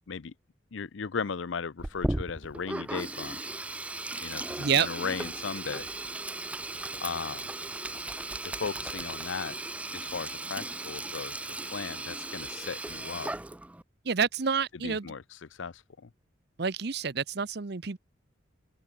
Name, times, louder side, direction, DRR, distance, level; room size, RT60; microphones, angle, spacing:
voice 1, 0.7-3.4 4.2-5.9 7.0-7.5 8.4-9.6 9.9-13.3 14.8-16.1, left 5 dB, 80° left, 0.6 m, -37 dB
Sink (filling or washing), 1.8-13.8, right 2 dB, 5° right, 0.3 m, -36 dB
voice 2, 4.6-4.9 14.1-15.1 16.6-18.0, right 6 dB, 55° right, 0.8 m, -28 dB
open air
head